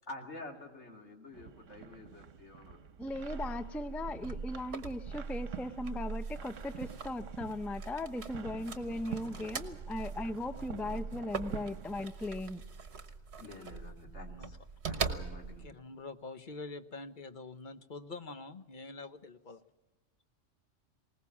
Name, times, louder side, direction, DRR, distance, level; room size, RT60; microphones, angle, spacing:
voice 1, 0.1-2.8 13.3-14.6 14.8-15.7, left 2 dB, 65° left, 2 dB, 3.1 m, -48 dB
sound 1, 1.3-12.1, right 8 dB, 80° right, 1.2 m, -49 dB
voice 2, 3.0-12.6, left 1 dB, ahead, 12 dB, 0.4 m, -38 dB
sound 2, 3.1-15.7, right 5 dB, 60° right, 1.6 m, -42 dB
voice 3, 15.6-19.6, left 3 dB, 45° left, 10 dB, 1.1 m, -45 dB
21.0 x 19.0 x 7.2 m, 1.1 s
omnidirectional pair, 1.3 m